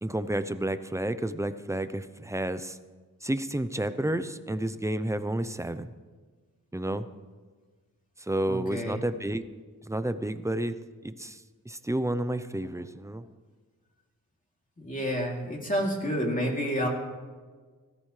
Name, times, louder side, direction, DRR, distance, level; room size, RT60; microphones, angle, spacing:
voice 1, 0.0-2.8 3.2-5.9 6.7-7.1 8.2-9.4 9.8-10.7 11.0-13.3, right 1 dB, 10° right, 12 dB, 0.6 m, -31 dB
voice 2, 8.5-9.0 14.8-16.9, equal, 25° left, -1 dB, 3.0 m, -29 dB
17.5 x 14.0 x 3.3 m, 1.4 s
cardioid pair, 70°, 34 cm